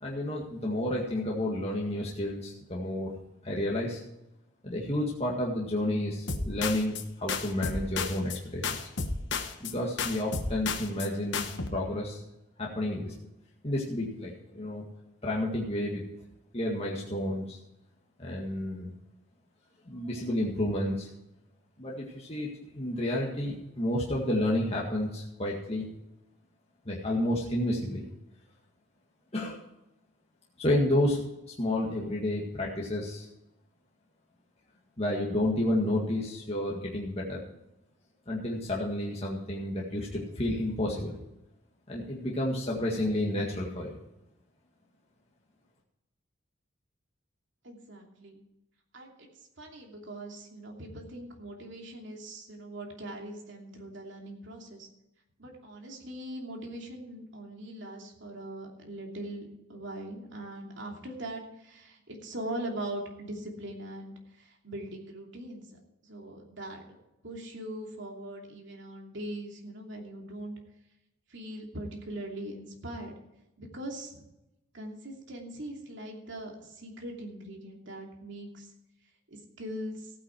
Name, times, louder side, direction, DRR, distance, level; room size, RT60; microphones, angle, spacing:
voice 1, 0.0-3.1 3.4-4.0 4.6-8.8 9.6-12.2 12.6-13.1 13.6-14.9 15.2-16.0 16.5-17.6 18.2-18.9 19.9-21.1 21.8-22.5 22.7-25.9 26.9-28.0 29.3-29.6 30.6-31.2 31.6-33.3 35.0-37.4 38.3-41.2 41.9-43.9, left 1 dB, 30° left, -3 dB, 1.9 m, -30 dB
sound 1, 6.3-7.0 7.3-8.4 8.6-9.7 10.0-11.1 11.3-11.7, left 4 dB, 60° left, 1.3 m, -32 dB
voice 2, 47.6-48.4 48.9-49.3 49.6-54.9 55.4-65.7 66.0-66.8 67.2-70.6 71.3-73.1 73.6-74.2 74.7-78.7 79.3-80.1, right 1 dB, 60° right, 1 dB, 2.9 m, -41 dB
15.5 x 9.4 x 4.6 m, 0.89 s
head